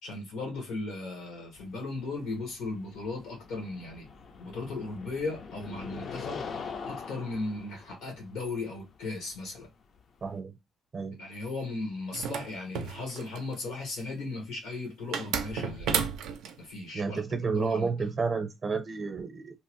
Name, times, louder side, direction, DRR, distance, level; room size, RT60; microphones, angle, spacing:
voice 1, 0.0-4.1 4.4-6.5 6.9-9.7 11.2-16.0 16.6-17.2 17.5-17.9, left 3 dB, 90° left, 1.2 m, -36 dB
sound 1, 1.6-10.4, left 5 dB, 55° left, 0.4 m, -43 dB
voice 2, 10.2-10.6 10.9-11.2 16.9-19.6, right 4 dB, 45° right, 0.6 m, -31 dB
sound 2, 12.1-13.6 15.1-16.5, right 7 dB, 90° right, 0.4 m, -32 dB
2.9 x 2.0 x 2.9 m
cardioid pair, 90°, 0 cm